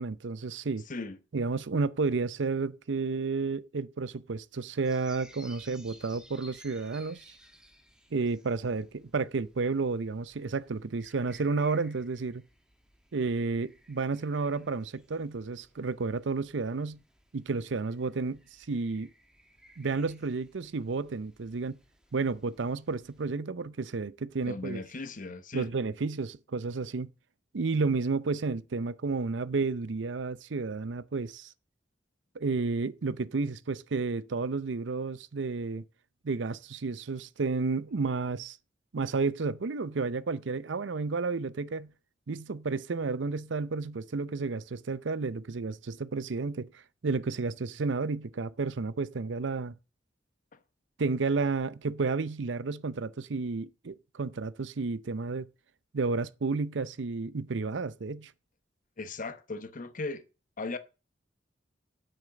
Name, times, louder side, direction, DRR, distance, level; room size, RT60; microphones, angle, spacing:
voice 1, 0.0-0.8 1.3-7.2 8.1-12.4 13.1-17.0 17.3-18.4 18.7-19.1 19.8-21.8 22.1-24.8 25.5-27.1 27.5-31.5 32.4-35.8 36.2-38.6 38.9-41.9 42.3-49.7 51.0-55.5 55.9-58.3, right 4 dB, 70° right, 0.6 m, -31 dB
voice 2, 0.9-1.2 24.4-25.7 59.0-60.2 60.6-60.8, left 3 dB, 45° left, 1.0 m, -37 dB
sound 1, 4.8-23.2, equal, 5° right, 1.3 m, -58 dB
8.7 x 6.6 x 7.6 m
head